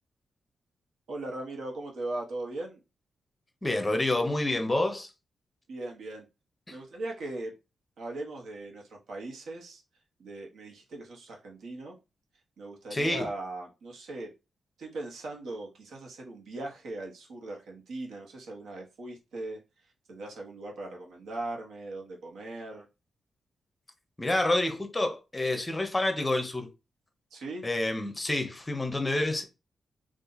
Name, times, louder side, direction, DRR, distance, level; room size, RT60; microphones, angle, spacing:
voice 1, 1.1-2.8 5.7-6.3 6.7-7.5 8.0-9.8 10.2-11.9 12.6-14.3 14.8-19.6 20.1-22.9 27.3-27.6, right 2 dB, 75° right, 1.1 m, -39 dB
voice 2, 3.6-5.1 6.7-6.8 12.9-13.3 24.2-26.7 27.6-29.4, left 2 dB, 15° left, 0.7 m, -28 dB
2.8 x 2.5 x 3.9 m
wide cardioid pair, 140°, 0 cm